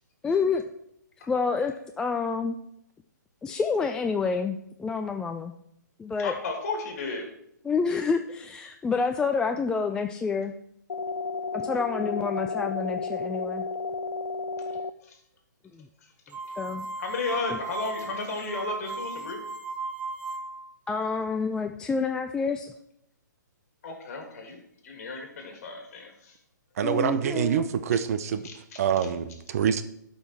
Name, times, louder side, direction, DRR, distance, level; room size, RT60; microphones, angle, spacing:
voice 1, 0.2-0.6 1.3-2.6 3.4-5.5 6.0-6.4 7.6-10.5 11.5-13.6 15.7-15.9 16.6-16.9 17.5-17.6 20.9-22.7 26.8-27.7, left 5 dB, 5° left, 5 dB, 0.3 m, -28 dB
voice 2, 6.2-7.3 14.7-15.2 17.0-19.4 23.8-26.4 28.4-28.8, left 3 dB, 50° left, 3 dB, 2.7 m, -34 dB
sound 1, 10.9-14.9, left 4 dB, 75° left, 0.5 m, -32 dB
sound 2, 16.3-20.7, right 3 dB, 15° right, 0.7 m, -36 dB
voice 3, 26.8-28.4 28.8-29.8, right 8 dB, 50° right, 11 dB, 0.7 m, -26 dB
12.0 x 5.6 x 4.6 m, 0.75 s
figure-of-eight pair, 130°, 10 cm